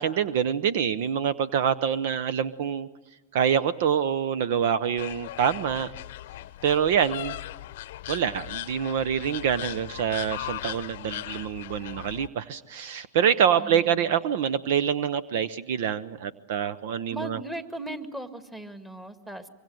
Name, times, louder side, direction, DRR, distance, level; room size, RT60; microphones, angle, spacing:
voice 1, 0.0-2.9 3.3-5.9 6.6-7.3 8.1-17.4, right 8 dB, 60° right, 16 dB, 0.8 m, -26 dB
sound 1, 5.0-12.3, left 14 dB, 65° left, 0.8 m, -38 dB
voice 2, 13.6-14.2 17.1-19.5, right 1 dB, 10° right, 8 dB, 1.9 m, -38 dB
25.0 x 24.0 x 7.8 m, 1.1 s
hypercardioid pair, 110°, 0 cm